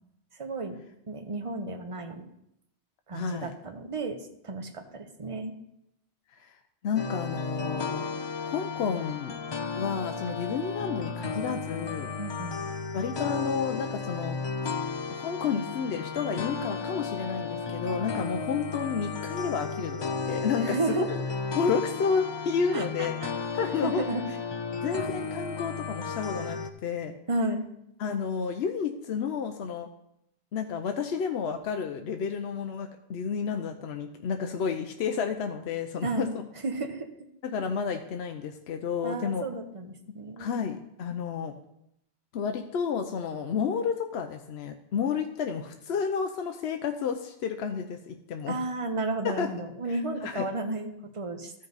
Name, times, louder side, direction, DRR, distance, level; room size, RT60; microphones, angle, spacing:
voice 1, 0.4-0.8 1.1-2.2 3.1-4.2 4.4-5.5 12.2-12.6 20.6-21.1 22.7-23.3 23.8-24.2 27.3-27.6 36.0-36.3 36.6-37.1 39.0-40.8 48.5-51.5, right 2 dB, 30° right, 5 dB, 0.9 m, -32 dB
voice 2, 3.1-3.5 6.3-6.5 6.8-8.1 8.4-9.4 9.8-12.1 12.9-14.4 15.1-21.1 21.6-23.1 23.5-24.1 24.8-27.2 28.0-29.9 30.5-36.3 37.4-39.5 40.4-41.5 42.3-48.6 49.2-49.5 50.2-50.5, left 6 dB, 75° left, 6 dB, 0.9 m, -31 dB
sound 1, 7.0-26.7, left 4 dB, 45° left, 0.3 m, -34 dB
13.5 x 5.3 x 4.0 m, 0.79 s
omnidirectional pair, 1.1 m